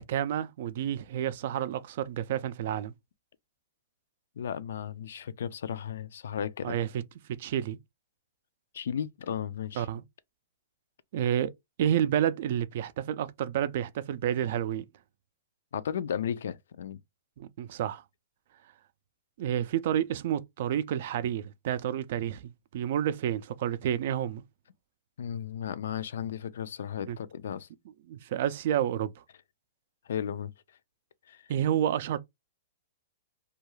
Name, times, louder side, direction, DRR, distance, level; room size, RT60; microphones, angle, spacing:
voice 1, 0.0-2.9 6.6-6.9 7.3-7.8 9.8-10.0 11.1-11.5 11.8-14.8 17.4-18.0 19.4-24.4 27.1-27.2 28.1-29.1 31.5-32.2, right 10 dB, 55° right, 0.3 m, -30 dB
voice 2, 4.4-6.8 8.7-9.9 15.7-17.0 25.2-27.7 30.1-30.5 31.3-31.4, left 8 dB, 75° left, 0.3 m, -34 dB
2.3 x 2.2 x 3.0 m
hypercardioid pair, 150°, 0 cm